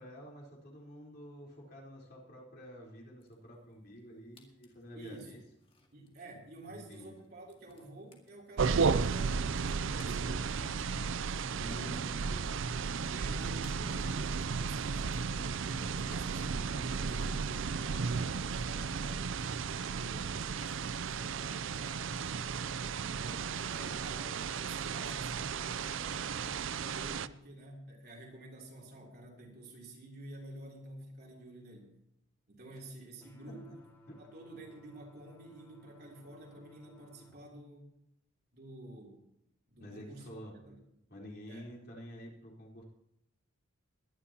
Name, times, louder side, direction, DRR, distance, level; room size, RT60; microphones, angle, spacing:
voice 1, 0.0-5.4 6.7-7.1 11.5-12.7 33.5-33.7 34.1-34.2 39.8-40.6 41.1-42.8, equal, 45° left, -3 dB, 4.1 m, -49 dB
sound 1, 3.2-18.3 18.7-20.3, left 2 dB, 25° left, 2.0 m, -64 dB
voice 2, 4.9-5.3 5.9-11.1 11.7-12.0 12.8-22.3 23.0-31.9 32.5-33.8 34.2-37.9 38.5-39.2 39.7-40.3 40.5-40.8 41.5-41.7, right 1 dB, 45° right, -1 dB, 3.4 m, -50 dB
sound 2, 8.6-27.3, right 5 dB, 65° right, 0.5 m, -34 dB
sound 3, 33.2-37.3, left 1 dB, 10° left, 2.2 m, -61 dB
21.5 x 11.0 x 2.9 m, 0.77 s
head